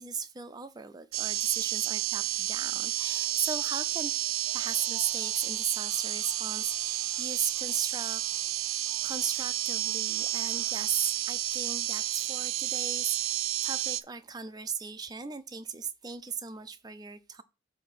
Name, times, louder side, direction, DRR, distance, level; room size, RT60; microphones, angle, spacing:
voice 1, 0.0-4.1 4.5-8.2 9.0-17.4, right 6 dB, 20° right, 0.4 m, -36 dB
sound 1, 1.1-14.0, right 14 dB, 85° right, 0.4 m, -31 dB
sound 2, 1.8-11.1, right 4 dB, 35° left, 2.2 m, -57 dB
8.0 x 2.8 x 5.7 m
head